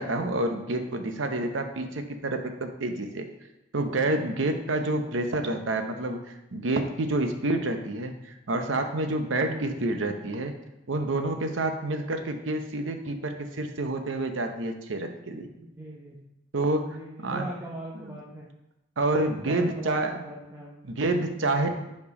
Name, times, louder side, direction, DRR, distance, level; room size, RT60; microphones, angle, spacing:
voice 1, 0.0-3.3 3.7-10.5 10.9-15.5 16.5-16.9 17.2-17.5 18.0-18.2 19.0-20.2 20.8-21.7, right 2 dB, 75° right, 6 dB, 0.7 m, -28 dB
voice 2, 9.5-9.8 15.5-16.2 16.9-18.5 19.3-20.7, right 1 dB, 15° right, -4 dB, 0.8 m, -40 dB
5.6 x 4.4 x 5.2 m, 0.91 s
head